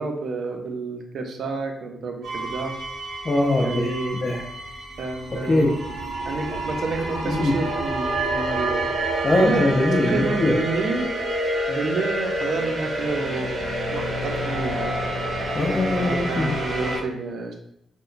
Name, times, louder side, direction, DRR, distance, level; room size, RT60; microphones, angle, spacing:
voice 1, 0.0-2.7 3.6-4.2 5.0-5.8 6.3-8.9 9.3-9.7 10.1-11.1 11.7-13.6 13.9-14.9 15.9-17.5, right 3 dB, 65° right, 3 dB, 0.4 m, -29 dB
sound 1, 2.2-17.0, right 1 dB, 80° right, 0.8 m, -28 dB
voice 2, 3.2-3.9 4.2-4.4 5.5-5.7 7.3-7.5 9.2-10.5 15.5-16.5, left 1 dB, 25° left, -4 dB, 0.3 m, -21 dB
2.9 x 2.1 x 2.4 m, 0.75 s
wide cardioid pair, 165°, 0 cm